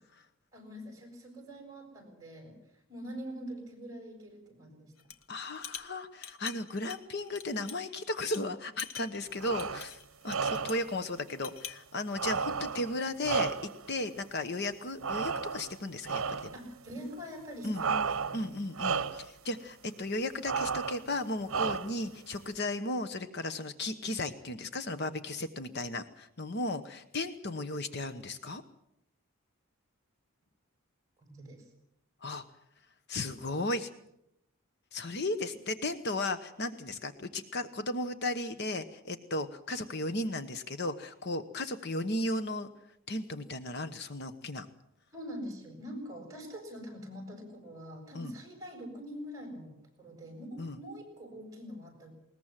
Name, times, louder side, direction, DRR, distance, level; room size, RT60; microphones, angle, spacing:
voice 1, 0.5-2.6 2.9-4.9 16.5-18.6 31.3-31.6 45.1-52.1, equal, 15° right, 2 dB, 7.1 m, -44 dB
sound 1, 5.0-5.2 5.6-8.0 8.3-8.4 8.8-10.9 11.3-11.8, left 7 dB, 75° left, 1.3 m, -44 dB
voice 2, 5.3-10.0 10.2-13.6 13.9-16.5 17.6-17.8 18.3-28.6 32.2-32.4 33.1-33.9 34.9-42.7 43.1-44.7 48.1-48.3 50.6-50.8, left 2 dB, 50° left, 10 dB, 1.1 m, -35 dB
sound 2, 9.4-9.9 10.3-10.9 12.1-13.9 15.0-15.8 16.1-16.6 17.7-18.5 18.7-19.3 20.4-21.1 21.5-22.1, right 5 dB, 80° right, 0.9 m, -33 dB
21.0 x 20.0 x 7.5 m, 0.77 s
head